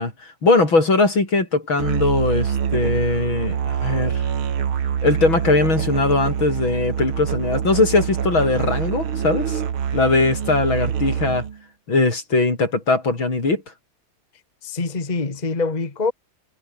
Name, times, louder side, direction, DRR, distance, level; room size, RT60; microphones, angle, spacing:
voice 1, 0.0-4.3 5.0-9.6 9.9-11.5 11.9-13.6, left 3 dB, 70° left, 6.3 m, -20 dB
Musical instrument, 1.8-11.6, right 8 dB, 85° right, 2.6 m, -25 dB
voice 2, 14.6-16.1, left 3 dB, 20° left, 1.8 m, -24 dB
omnidirectional pair, 2.2 m